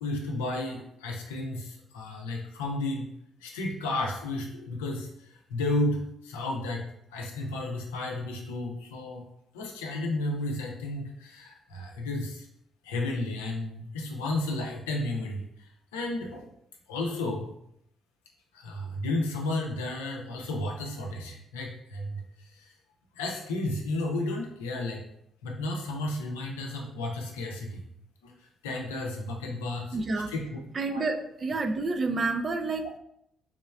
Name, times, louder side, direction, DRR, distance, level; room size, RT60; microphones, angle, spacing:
voice 1, 0.0-3.1 3.4-6.8 7.1-9.2 9.5-12.5 12.8-16.5 16.9-17.5 18.5-22.7 23.1-25.0 25.4-27.9 28.2-28.3 28.6-30.0 30.3-30.5 30.9-31.0, left 2 dB, 80° left, 0 dB, 0.5 m, -33 dB
voice 2, 29.9-30.3 30.7-33.0, right 3 dB, 40° right, 5 dB, 0.4 m, -29 dB
3.6 x 3.1 x 2.3 m, 0.75 s
figure-of-eight pair, 45°, 0 cm